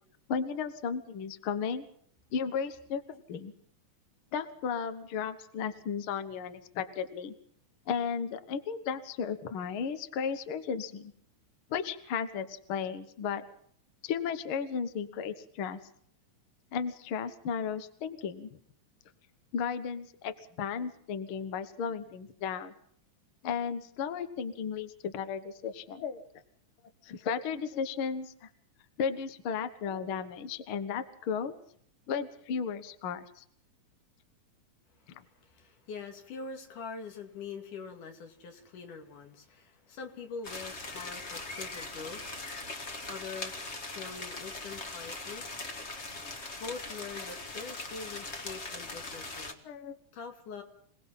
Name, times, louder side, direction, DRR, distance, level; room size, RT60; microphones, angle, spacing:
voice 1, 0.3-1.9 2.3-3.5 4.3-7.3 7.9-11.1 11.7-13.4 14.0-15.8 16.7-18.5 19.5-22.7 23.4-26.2 27.0-28.5 29.0-31.6 32.1-33.4 49.6-50.0, left 6 dB, 55° left, 10 dB, 1.7 m, -34 dB
voice 2, 35.1-42.4 43.1-45.5 46.6-49.6 50.1-50.6, left 5 dB, 80° left, 4 dB, 3.7 m, -44 dB
sound 1, 40.4-49.5, left 3 dB, 30° left, 1.3 m, -40 dB
27.0 x 18.5 x 5.7 m, 0.63 s
omnidirectional pair, 3.5 m